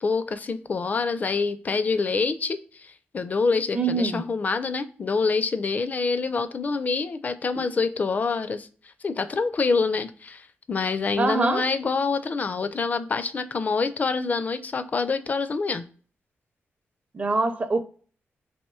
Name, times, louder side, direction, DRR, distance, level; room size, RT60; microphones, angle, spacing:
voice 1, 0.0-8.7 9.0-15.9, left 4 dB, 35° left, 0.4 m, -26 dB
voice 2, 3.7-4.3 7.6-7.7 11.2-11.6 17.1-17.8, right 3 dB, 30° right, 0.5 m, -24 dB
4.2 x 2.9 x 2.2 m
wide cardioid pair, 130°, 4 cm